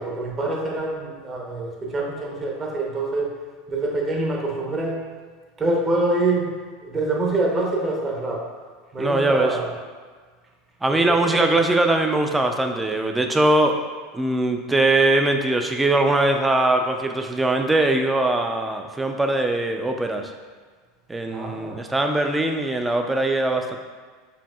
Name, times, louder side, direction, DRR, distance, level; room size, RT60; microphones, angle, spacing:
voice 1, 0.0-3.3 3.7-5.1 5.6-6.6 6.8-8.4 8.9-9.7 10.9-11.4 21.3-21.8, right 2 dB, 25° right, -2 dB, 0.9 m, -25 dB
voice 2, 9.0-9.6 10.8-13.8 14.1-20.3 21.1-23.8, right 2 dB, 10° right, 4 dB, 0.4 m, -21 dB
5.1 x 2.6 x 2.3 m, 1.5 s
hypercardioid pair, 85°, 0 cm